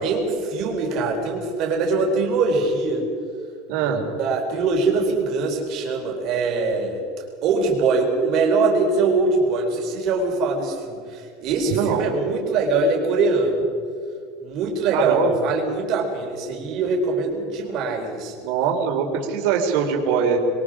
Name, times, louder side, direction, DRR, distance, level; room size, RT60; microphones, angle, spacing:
voice 1, 0.0-3.1 3.8-7.0 7.4-13.6 14.4-18.3, right 3 dB, 35° right, 1 dB, 4.4 m, -22 dB
voice 2, 3.7-4.1 11.6-12.0 14.9-15.3 18.4-20.4, right 7 dB, 55° right, 1 dB, 4.0 m, -22 dB
26.5 x 22.5 x 5.1 m, 2.3 s
supercardioid pair, 175°, 0 cm